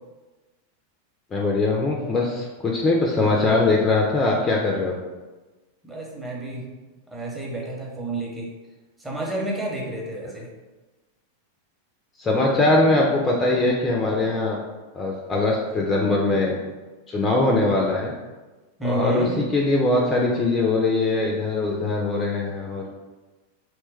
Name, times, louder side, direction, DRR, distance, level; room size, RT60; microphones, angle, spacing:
voice 1, 1.3-4.9 12.2-14.6 14.9-16.6 17.1-18.1 18.8-22.8, left 2 dB, 20° left, -1 dB, 0.4 m, -21 dB
voice 2, 5.8-6.7 7.1-8.5 9.0-10.5 18.8-19.4, right 1 dB, 10° right, -3 dB, 0.7 m, -30 dB
2.9 x 2.1 x 3.2 m, 1.2 s
figure-of-eight pair, 90°, 0 cm